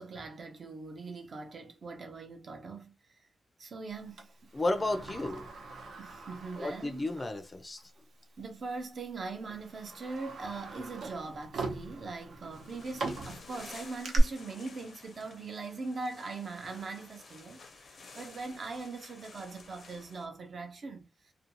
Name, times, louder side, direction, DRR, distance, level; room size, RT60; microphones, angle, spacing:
voice 1, 0.0-2.9 3.6-4.5 6.0-7.1 8.4-21.1, right 3 dB, 50° right, 0.6 m, -41 dB
Sliding door, 4.2-7.4 7.8-7.9 8.8-9.0 9.5-14.2, right 3 dB, 85° right, 0.7 m, -42 dB
voice 2, 4.5-5.4 6.6-7.8, left 2 dB, 25° left, 0.4 m, -32 dB
sound 1, 12.5-20.3, left 4 dB, 65° left, 0.6 m, -52 dB
2.5 x 2.2 x 2.9 m
wide cardioid pair, 145°, 0 cm